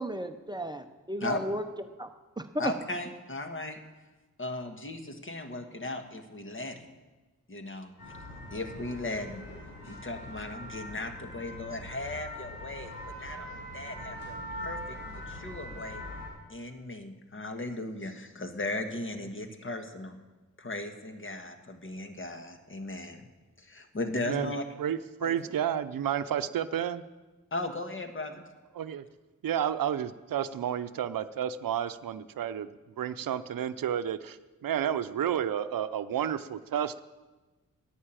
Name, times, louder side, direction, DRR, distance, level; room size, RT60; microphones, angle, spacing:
voice 1, 0.0-1.6 2.0-2.1 2.4-2.7, equal, 15° right, 7 dB, 0.6 m, -34 dB
voice 2, 2.6-3.8 4.4-6.9 7.5-7.9 8.5-16.0 16.5-20.2 20.6-23.3 23.6-24.6 25.2-25.4 27.5-28.4, left 2 dB, 35° left, 5 dB, 1.5 m, -37 dB
sound 1, 8.0-16.3, left 1 dB, 80° left, 5.6 m, -42 dB
voice 3, 24.8-27.0 28.7-29.0 29.4-37.0, right 9 dB, 80° right, 12 dB, 0.6 m, -31 dB
11.0 x 9.3 x 9.0 m, 1.2 s
wide cardioid pair, 125°, 33 cm